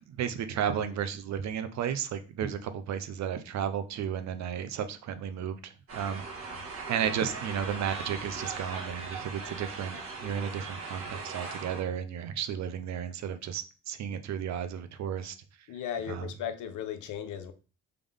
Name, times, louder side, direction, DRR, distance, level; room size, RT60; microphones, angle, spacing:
voice 1, 0.0-6.2 6.9-15.4 16.1-16.3, right 8 dB, 65° right, 0.6 m, -33 dB
sound 1, 5.9-11.8, right 4 dB, 50° right, 1.4 m, -39 dB
voice 2, 15.7-17.5, left 9 dB, 80° left, 0.7 m, -36 dB
3.6 x 3.4 x 3.5 m
cardioid pair, 90°, 30 cm